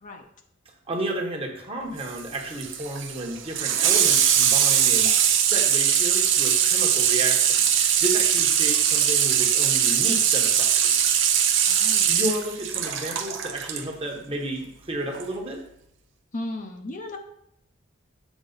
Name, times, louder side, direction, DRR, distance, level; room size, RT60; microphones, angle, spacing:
voice 1, 0.9-7.6 8.0-11.1 12.1-15.6, right 1 dB, 30° right, 1 dB, 1.1 m, -32 dB
Water tap faucet / Sink (filling or washing), 2.0-13.8 15.1-15.2, right 9 dB, 70° right, 0.7 m, -21 dB
voice 2, 11.6-12.1 16.3-17.2, left 2 dB, 40° left, 4 dB, 0.7 m, -35 dB
7.2 x 4.7 x 3.9 m, 0.76 s
head